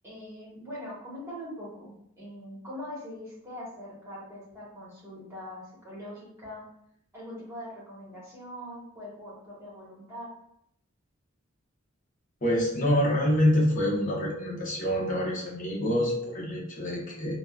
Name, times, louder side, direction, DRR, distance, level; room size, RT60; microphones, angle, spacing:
voice 1, 0.0-6.6 7.1-10.3, equal, 15° right, -6 dB, 1.1 m, -42 dB
voice 2, 12.4-17.3, left 1 dB, 40° left, -3 dB, 0.8 m, -26 dB
3.6 x 2.0 x 2.3 m, 0.72 s
head